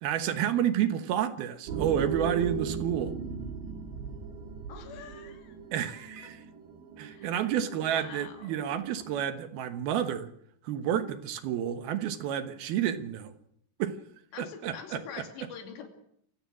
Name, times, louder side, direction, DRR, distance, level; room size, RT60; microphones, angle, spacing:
voice 1, 0.0-3.1 5.7-6.4 7.0-10.3 10.6-13.3 13.8-14.0 14.4-15.0, right 10 dB, 70° right, 10 dB, 2.8 m, -30 dB
sound 1, 1.7-9.2, right 6 dB, 90° right, 4.9 m, -38 dB
voice 2, 4.7-5.6 5.9-6.0 7.1-8.5 14.3-15.9, left 6 dB, 85° left, 5 dB, 5.0 m, -45 dB
27.5 x 16.5 x 6.2 m, 0.69 s
omnidirectional pair, 4.9 m